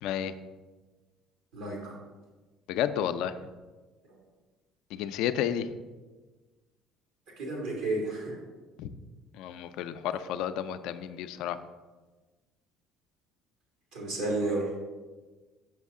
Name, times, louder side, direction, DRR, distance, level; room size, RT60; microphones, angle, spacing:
voice 1, 0.0-0.3 2.7-3.4 4.9-5.7 8.8-8.9 9.3-11.6, left 10 dB, 75° left, 11 dB, 0.3 m, -31 dB
voice 2, 1.5-2.0 7.4-8.4 13.9-14.7, right 2 dB, 80° right, -2 dB, 2.0 m, -31 dB
5.9 x 5.4 x 3.6 m, 1.3 s
supercardioid pair, 70°, 0 cm